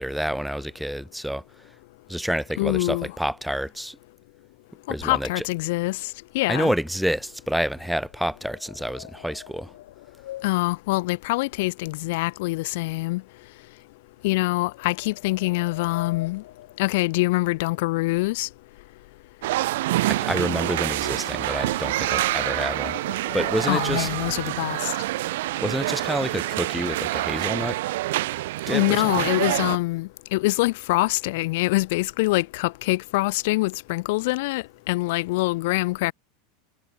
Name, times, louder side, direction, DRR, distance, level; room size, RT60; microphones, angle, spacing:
voice 1, 0.0-1.4 2.1-4.0 4.9-5.4 6.5-9.7 20.1-23.0 23.3-24.1 25.6-27.8 28.7-29.3, equal, ahead, 1.4 m, -28 dB
voice 2, 2.6-3.1 4.9-6.7 10.4-13.2 14.2-16.4 16.8-18.5 23.7-24.9 28.7-36.1, left 22 dB, 60° left, 1.5 m, -24 dB
sound 1, 7.3-12.3 12.6-12.9 13.4-13.6 14.4-17.7 18.0-24.2 24.8-24.9 25.2-25.5 25.8-26.5, left 14 dB, 85° left, 7.6 m, -44 dB
sound 2, 19.4-29.8, right 17 dB, 70° right, 0.7 m, -27 dB
supercardioid pair, 165°, 0 cm